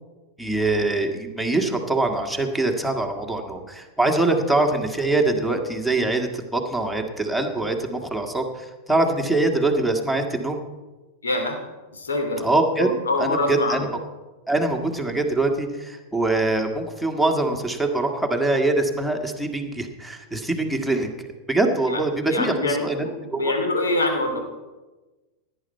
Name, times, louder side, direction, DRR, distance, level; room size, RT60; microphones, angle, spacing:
voice 1, 0.4-10.6 12.4-12.9 13.2-13.9 14.5-23.1 23.3-23.4, right 2 dB, ahead, 1 dB, 1.7 m, -23 dB
voice 2, 11.2-11.6 11.9-12.4 12.8-13.9 21.9-22.0 22.3-24.4, left 2 dB, 70° left, 5 dB, 2.8 m, -25 dB
17.0 x 10.0 x 4.5 m, 1.2 s
figure-of-eight pair, 90°, 0 cm